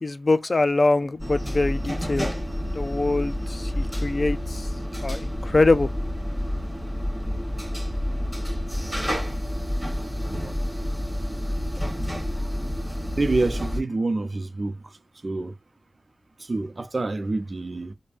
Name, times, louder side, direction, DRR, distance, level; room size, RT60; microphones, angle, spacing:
voice 1, 0.0-4.7 5.0-5.9, left 2 dB, 50° left, 0.4 m, -24 dB
sound 1, 1.2-13.8, equal, 5° right, 2.8 m, -29 dB
voice 2, 13.2-14.7 15.2-15.5 16.4-17.9, right 2 dB, 50° right, 0.7 m, -27 dB
5.1 x 2.2 x 2.5 m
wide cardioid pair, 65°, 0 cm